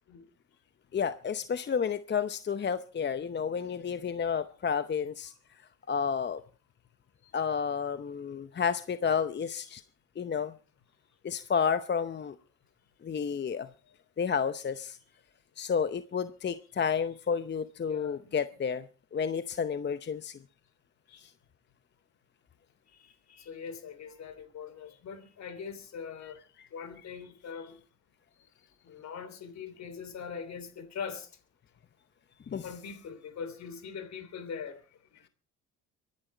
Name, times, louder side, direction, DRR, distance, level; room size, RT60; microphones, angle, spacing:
voice 1, 0.9-5.3 5.9-6.4 7.3-9.8 10.2-10.5 11.2-12.3 13.0-13.7 14.2-15.0 15.6-18.9 19.1-20.4 21.2-21.3 26.8-26.9 32.5-32.7, left 6 dB, 35° left, 0.8 m, -31 dB
voice 2, 17.9-18.3 21.1-21.3 23.0-26.4 26.7-27.8 28.8-31.3 32.6-34.8 35.1-35.3, left 6 dB, 65° left, 3.1 m, -42 dB
23.5 x 10.5 x 4.5 m
cardioid pair, 90°, 30 cm